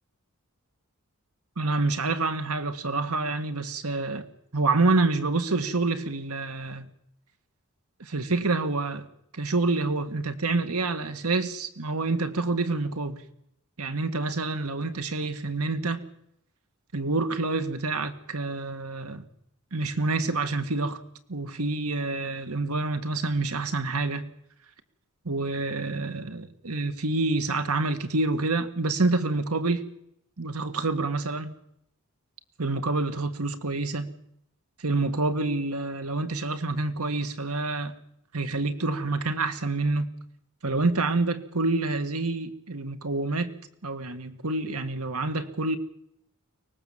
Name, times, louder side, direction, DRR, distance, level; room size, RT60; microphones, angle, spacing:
voice 1, 1.6-4.2 4.5-6.9 8.0-9.1 9.3-13.2 13.8-16.0 16.9-19.2 19.7-21.0 21.3-24.2 25.3-29.8 30.4-31.5 32.6-34.1 34.8-37.9 38.3-40.1 40.6-43.5 43.8-45.8, right 3 dB, 90° right, 2.0 m, -27 dB
24.0 x 20.0 x 7.5 m
head